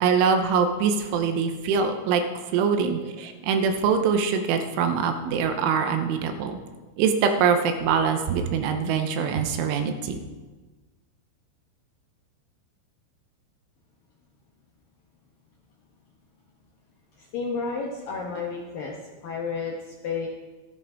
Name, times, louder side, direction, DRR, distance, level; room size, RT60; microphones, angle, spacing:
voice 1, 0.0-2.2 2.5-6.6 7.0-10.2, right 6 dB, 85° right, 7 dB, 3.4 m, -23 dB
voice 2, 2.8-3.3 17.2-20.3, left 5 dB, 75° left, -1 dB, 2.1 m, -32 dB
15.0 x 10.5 x 4.9 m, 1.3 s
omnidirectional pair, 5.7 m